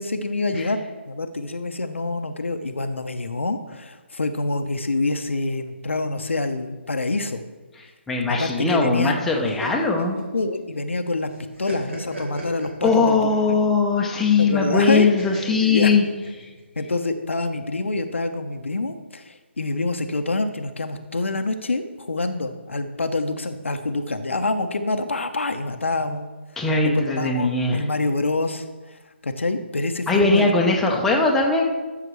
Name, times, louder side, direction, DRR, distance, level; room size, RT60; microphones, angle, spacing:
voice 1, 0.0-7.4 8.3-9.2 9.6-9.7 10.0-10.1 10.3-11.3 11.6-13.6 14.4-15.1 15.6-15.9 16.8-26.3 26.8-30.8, left 2 dB, 75° left, 7 dB, 0.8 m, -26 dB
voice 2, 8.1-10.2 12.8-16.0 16.4-16.5 26.6-27.8 30.1-31.6, left 3 dB, 5° left, -1 dB, 0.7 m, -20 dB
sound 1, 9.3-11.0 11.3-13.5 15.2-16.6, equal, 80° right, 2.8 m, -36 dB
12.0 x 6.7 x 3.2 m, 1.2 s
figure-of-eight pair, 145°, 7 cm